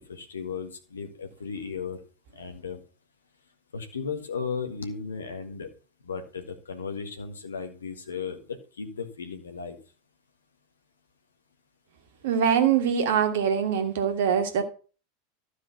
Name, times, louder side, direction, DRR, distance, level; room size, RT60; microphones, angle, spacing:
voice 1, 0.1-2.0 2.3-2.8 3.7-5.7 6.0-8.4 8.8-9.8, left 5 dB, 75° left, 7 dB, 1.7 m, -35 dB
voice 2, 12.2-14.6, right 8 dB, 60° right, 7 dB, 1.7 m, -23 dB
12.5 x 5.0 x 5.8 m, 0.37 s
figure-of-eight pair, 85°, 0 cm